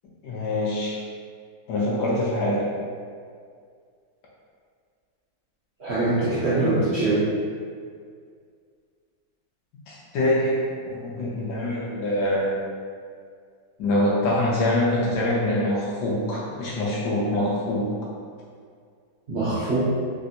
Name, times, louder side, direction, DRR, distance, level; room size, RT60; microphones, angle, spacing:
voice 1, 0.2-1.0 1.7-2.7 9.9-12.6 13.8-17.9, left 1 dB, 75° left, -5 dB, 1.0 m, -24 dB
voice 2, 5.8-7.2 19.3-19.8, right 2 dB, 85° right, -11 dB, 0.5 m, -23 dB
3.4 x 2.4 x 2.7 m, 2.1 s
omnidirectional pair, 2.2 m